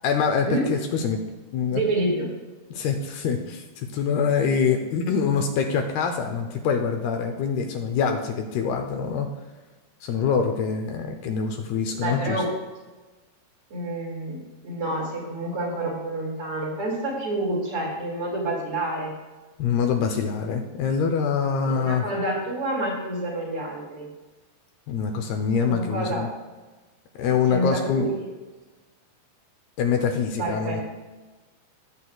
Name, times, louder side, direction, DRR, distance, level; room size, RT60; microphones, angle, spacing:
voice 1, 0.0-1.2 1.5-1.8 2.7-9.3 10.0-12.4 19.6-22.1 24.9-26.3 27.2-28.1 29.8-30.8, left 6 dB, 75° left, 4 dB, 2.6 m, -25 dB
voice 2, 1.7-2.3 11.9-12.5 13.7-19.1 21.7-24.1 25.7-26.3 27.5-28.3 30.4-30.8, right 1 dB, 40° right, -2 dB, 2.5 m, -28 dB
19.5 x 8.2 x 2.3 m, 1.2 s
omnidirectional pair, 4.9 m